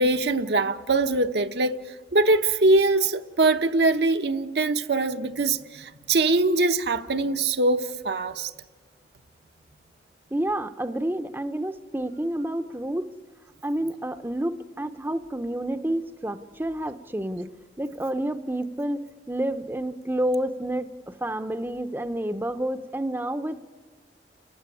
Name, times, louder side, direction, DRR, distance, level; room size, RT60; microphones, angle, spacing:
voice 1, 0.0-1.8 2.1-8.5, right 2 dB, 70° right, 0.9 m, -22 dB
voice 2, 10.3-13.1 13.6-17.5 17.8-23.6, right 1 dB, 10° right, 0.6 m, -29 dB
30.0 x 15.5 x 9.7 m
head